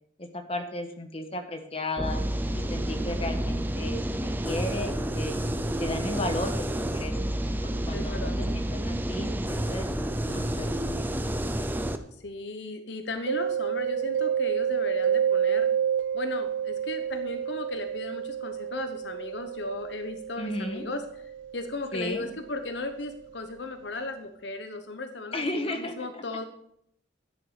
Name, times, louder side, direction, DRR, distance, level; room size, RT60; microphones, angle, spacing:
voice 1, 0.2-2.2 2.5-4.0 4.4-5.4 5.8-6.5 6.8-7.3 7.6-8.5 8.8-9.9 10.3-10.8 20.4-20.8 21.9-22.2 25.3-26.4, left 1 dB, 30° left, 5 dB, 1.4 m, -34 dB
sound 1, 2.0-12.0, right 1 dB, 10° right, 0.7 m, -29 dB
voice 2, 7.9-8.4 12.2-15.7 16.1-21.0 21.5-26.4, left 2 dB, 70° left, 8 dB, 0.9 m, -36 dB
Mallet percussion, 13.3-22.8, right 8 dB, 80° right, 0.3 m, -30 dB
12.5 x 10.0 x 4.9 m, 0.72 s
head